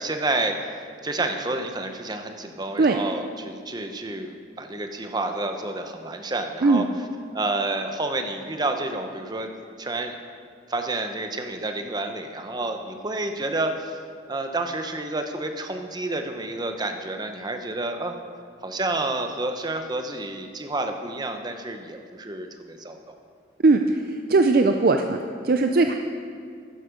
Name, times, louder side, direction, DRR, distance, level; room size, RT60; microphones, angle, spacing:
voice 1, 0.0-4.3 4.6-6.9 7.3-9.5 9.8-10.1 10.7-14.0 14.3-18.2 18.6-23.2, right 2 dB, 20° right, 6 dB, 0.8 m, -29 dB
voice 2, 24.1-25.9, right 3 dB, 50° right, 5 dB, 0.5 m, -19 dB
13.5 x 9.3 x 5.1 m, 2.2 s
head